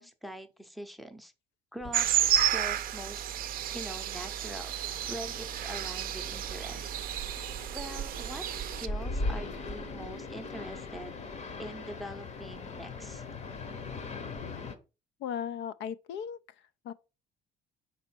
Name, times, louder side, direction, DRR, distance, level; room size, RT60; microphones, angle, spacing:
voice 1, 0.0-1.3 1.7-2.1 2.5-3.4 3.7-4.8 5.1-7.0 7.7-11.1 11.6-13.2, equal, ahead, 0.6 m, -43 dB
sound 1, 1.8-14.8, left 3 dB, 35° left, 0.8 m, -41 dB
sound 2, 1.9-8.9, right 11 dB, 50° right, 0.5 m, -31 dB
voice 2, 15.2-16.4 16.8-16.9, left 8 dB, 70° left, 0.5 m, -36 dB
5.3 x 4.1 x 4.4 m
cardioid pair, 130°, 19 cm